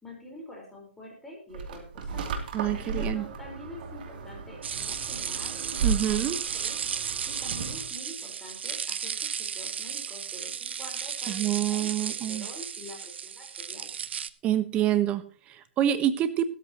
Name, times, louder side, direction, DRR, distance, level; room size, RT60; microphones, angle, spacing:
voice 1, 0.0-2.4 2.8-6.8 7.2-13.9, left 1 dB, 5° left, -2 dB, 4.5 m, -46 dB
sound 1, 1.5-7.9, right 5 dB, 50° right, 3.0 m, -35 dB
voice 2, 2.5-3.2 5.8-6.4 11.3-12.5 14.4-16.4, right 11 dB, 20° right, 12 dB, 1.2 m, -27 dB
sound 2, 4.6-14.3, right 7 dB, 70° right, 1.0 m, -34 dB
15.5 x 13.5 x 3.0 m, 0.40 s
hypercardioid pair, 150°, 6 cm